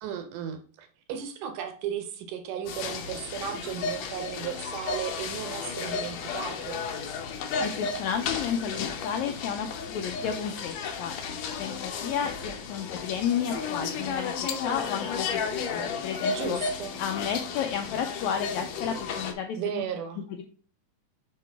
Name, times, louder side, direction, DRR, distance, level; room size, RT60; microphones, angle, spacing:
voice 1, 0.0-6.8 16.3-17.0 19.6-20.2, right 8 dB, 75° right, 7 dB, 2.2 m, -35 dB
sound 1, 2.7-19.3, left 5 dB, 70° left, 1.7 m, -33 dB
voice 2, 7.6-11.1 11.4-14.4 14.6-16.6 17.0-19.8, left 7 dB, 85° left, 5 dB, 1.6 m, -32 dB
6.6 x 5.0 x 3.4 m, 0.41 s
omnidirectional pair, 3.9 m